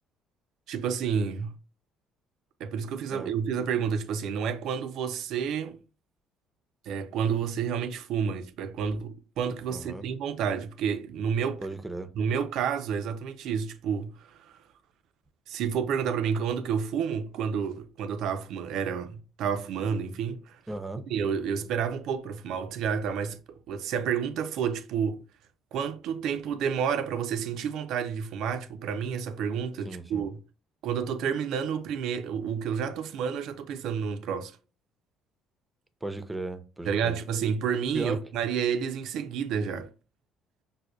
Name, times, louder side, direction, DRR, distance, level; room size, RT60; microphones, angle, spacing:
voice 1, 0.7-1.6 2.6-5.8 6.9-11.6 12.2-14.5 15.5-20.6 21.1-23.4 23.7-25.2 25.7-30.4 30.8-34.5 36.9-39.9, right 7 dB, 70° right, 0.4 m, -30 dB
voice 2, 9.7-10.0 11.6-12.1 20.7-21.0 29.8-30.3 36.0-37.2 37.9-38.2, right 2 dB, 15° right, 0.5 m, -36 dB
4.9 x 2.1 x 2.2 m
supercardioid pair, 65°, 0 cm